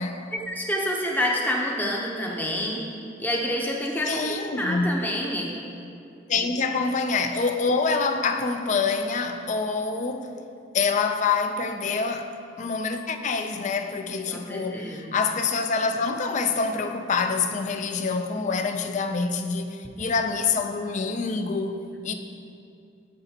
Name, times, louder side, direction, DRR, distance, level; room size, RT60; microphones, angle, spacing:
voice 1, 0.3-2.8 3.2-5.5 14.3-15.1 21.9-22.1, equal, 10° left, 0.7 m, -28 dB
voice 2, 4.1-5.0 6.3-10.4 10.7-21.8 22.0-22.1, left 4 dB, 40° left, 0.4 m, -26 dB
14.5 x 4.9 x 2.8 m
head